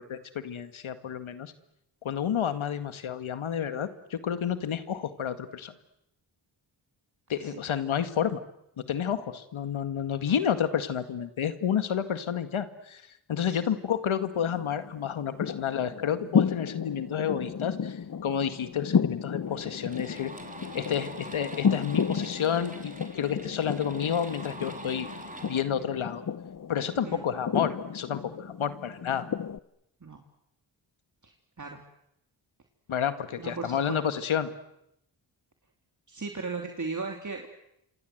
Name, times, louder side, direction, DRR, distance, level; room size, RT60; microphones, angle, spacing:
voice 1, 0.0-1.5 2.0-5.7 7.3-8.4 8.8-13.0 13.3-20.3 20.7-25.1 25.4-26.2 26.7-29.3 32.9-34.5, left 8 dB, 75° left, 10 dB, 2.1 m, -30 dB
sound 1, 14.4-29.6, left 7 dB, 40° left, 1.0 m, -32 dB
sound 2, 19.4-25.6, right 2 dB, 15° right, 3.9 m, -44 dB
voice 2, 31.2-31.8 33.4-34.0 36.1-37.5, right 4 dB, 35° right, 2 dB, 3.2 m, -37 dB
28.0 x 25.5 x 8.0 m, 0.81 s
cardioid pair, 55°, 48 cm